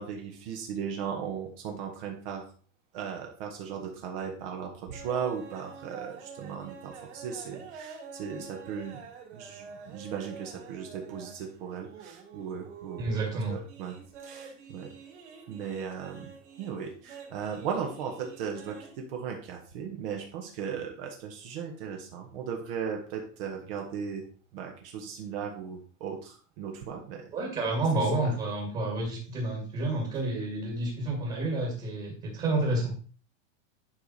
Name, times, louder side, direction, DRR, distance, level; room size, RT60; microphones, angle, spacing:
voice 1, 0.0-2.4 2.9-9.0 9.3-13.0 13.5-13.9 14.2-14.9 15.5-16.3 16.6-27.3 28.0-28.3, right 7 dB, 45° right, 2 dB, 1.6 m, -37 dB
sound 1, 4.9-18.9, right 5 dB, 65° right, 3.6 m, -47 dB
voice 2, 13.0-13.6 27.3-32.9, right 2 dB, 20° right, -1 dB, 2.2 m, -29 dB
10.5 x 5.0 x 4.2 m, 0.40 s
supercardioid pair, 170°, 38 cm